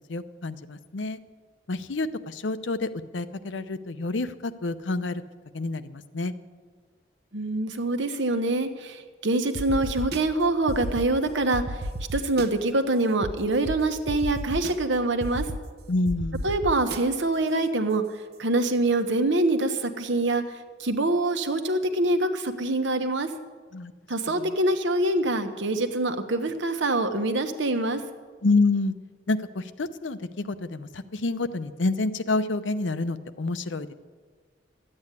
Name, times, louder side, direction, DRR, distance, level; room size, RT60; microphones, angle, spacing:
voice 1, 0.1-1.2 1.7-5.2 5.5-6.3 15.9-16.5 23.7-23.9 24.3-24.6 28.4-28.9 29.3-33.9, left 3 dB, 85° left, 12 dB, 0.7 m, -28 dB
voice 2, 7.3-11.8 12.1-15.5 16.4-18.0 18.4-20.4 20.8-23.3 24.1-28.0, right 2 dB, 85° right, 7 dB, 1.2 m, -25 dB
sound 1, 9.5-10.2 10.7-11.1 11.5-12.5 13.2-13.3 13.6-13.7 14.1-14.7 15.2-15.6 16.1-17.0, right 1 dB, 55° right, 0.7 m, -31 dB
13.0 x 8.8 x 9.7 m, 1.5 s
head